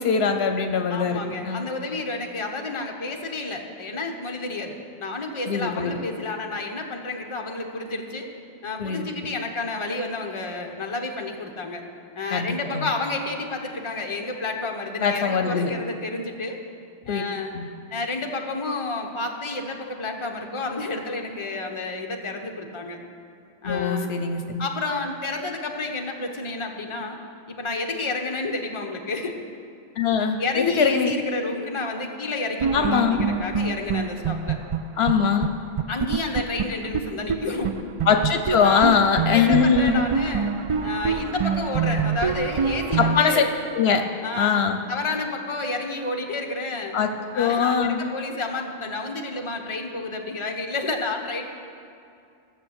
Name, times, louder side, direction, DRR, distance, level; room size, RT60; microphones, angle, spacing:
voice 1, 0.0-1.7 5.4-6.0 8.8-9.1 12.3-12.9 15.0-15.7 17.1-17.2 17.5-17.7 23.6-24.7 30.0-31.1 32.7-33.2 35.0-35.5 38.1-40.0 43.0-43.4 43.7-44.0 44.4-44.8 46.9-47.1 47.3-48.0, left 6 dB, 75° left, 6 dB, 1.0 m, -22 dB
voice 2, 0.9-8.3 8.6-11.8 12.2-16.6 17.1-17.5 17.9-23.0 23.6-24.1 24.6-27.2 27.5-29.4 30.4-34.6 35.9-37.7 38.6-38.9 39.3-40.5 40.8-43.5 44.2-44.5 44.9-46.9 47.3-51.4, left 3 dB, 30° left, 2 dB, 1.0 m, -30 dB
sound 1, 32.6-35.1 35.4-35.5 35.8-37.4 37.6-37.7 38.0-43.2, right 6 dB, 55° right, 0.3 m, -25 dB
13.0 x 6.8 x 8.1 m, 2.4 s
omnidirectional pair, 1.1 m